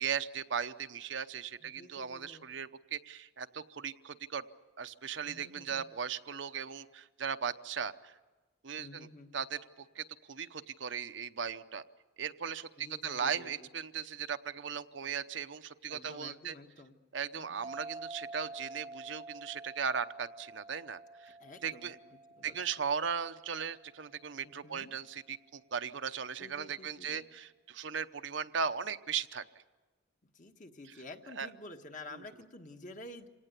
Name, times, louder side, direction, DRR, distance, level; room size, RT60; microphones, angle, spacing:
voice 1, 0.0-4.4 4.8-8.1 8.6-9.1 9.3-11.8 12.2-16.5 17.1-21.3 21.6-22.0 22.4-29.4 31.4-31.5, right 7 dB, 70° right, 9 dB, 0.8 m, -37 dB
voice 2, 1.6-2.5 5.2-5.8 8.7-9.3 12.8-13.7 15.9-17.0 17.3-17.7 21.3-22.6 24.4-24.9 26.4-27.2 30.2-33.3, left 2 dB, 40° left, 5 dB, 1.5 m, -51 dB
sound 1, 17.6-24.7, right 2 dB, 35° right, 0.9 m, -49 dB
27.0 x 18.0 x 8.3 m, 1.2 s
head